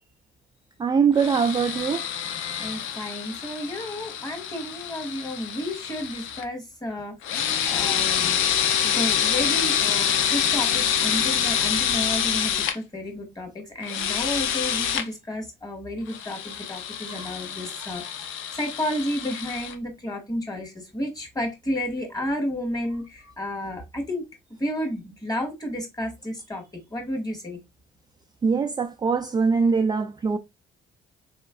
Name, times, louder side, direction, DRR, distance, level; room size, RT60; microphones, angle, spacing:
voice 1, 0.8-2.0 17.1-17.3 28.4-30.4, right 5 dB, 20° right, 0.3 m, -22 dB
sound 1, 1.2-6.4 7.2-12.7 13.8-15.0 16.1-19.7, left 9 dB, 80° left, 0.5 m, -26 dB
voice 2, 2.6-7.2 7.7-8.4 8.9-18.2 18.6-24.3 24.6-26.6 26.9-27.6, left 1 dB, 20° left, 1.7 m, -31 dB
3.5 x 3.1 x 2.2 m
cardioid pair, 90°, 20 cm